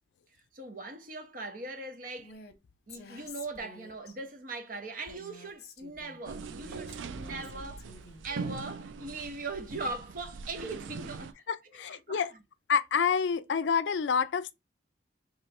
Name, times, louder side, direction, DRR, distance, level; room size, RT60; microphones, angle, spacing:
voice 1, 0.5-2.4 2.9-7.9 8.2-11.4 11.6-12.3, right 3 dB, 45° right, 0.8 m, -40 dB
Female speech woman speaking, 2.2-2.5 2.9-4.2 5.1-6.2 6.6-8.3, left 3 dB, 55° left, 0.8 m, -50 dB
sound 1, 6.3-11.3, right 4 dB, 90° right, 0.4 m, -41 dB
voice 2, 11.5-12.3 12.7-14.5, left 6 dB, 75° left, 0.4 m, -28 dB
3.2 x 3.0 x 4.2 m
head